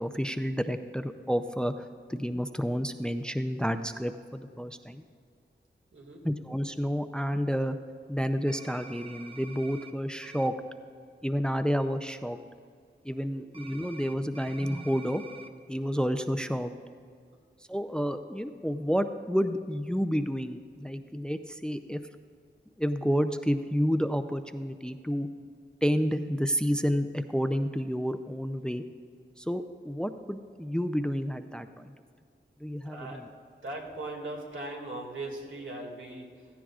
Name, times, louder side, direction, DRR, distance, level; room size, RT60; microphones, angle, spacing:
voice 1, 0.0-5.0 6.2-7.8 8.1-10.6 11.2-12.4 13.0-15.2 15.7-16.7 17.7-22.0 22.8-25.3 25.8-28.8 29.4-31.9 32.6-33.2, equal, 5° left, 9 dB, 0.5 m, -30 dB
voice 2, 5.9-6.3 13.2-13.5 32.8-33.2 33.6-36.5, right 2 dB, 85° right, -1 dB, 2.1 m, -39 dB
sound 1, 8.5-9.9 10.2-10.5 13.5-15.5, right 4 dB, 30° right, 0.8 m, -48 dB
16.5 x 14.0 x 2.4 m, 2.2 s
wide cardioid pair, 80°, 20 cm